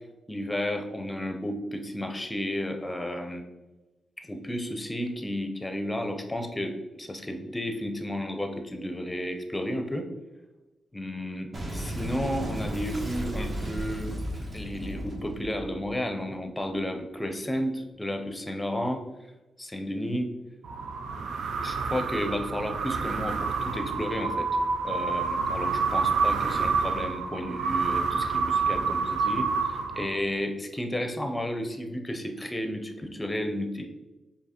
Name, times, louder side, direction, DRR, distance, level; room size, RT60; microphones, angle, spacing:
voice 1, 0.3-3.5 4.2-10.1 10.9-14.1 14.5-19.0 19.6-20.3 21.6-24.5 24.8-33.9, equal, 15° left, 6 dB, 0.6 m, -32 dB
Boom, 11.5-16.7, equal, 40° right, 0.8 m, -35 dB
sound 1, 20.6-30.4, right 5 dB, 80° right, 0.4 m, -28 dB
4.5 x 2.7 x 3.0 m, 1.1 s
cardioid pair, 65°, 0 cm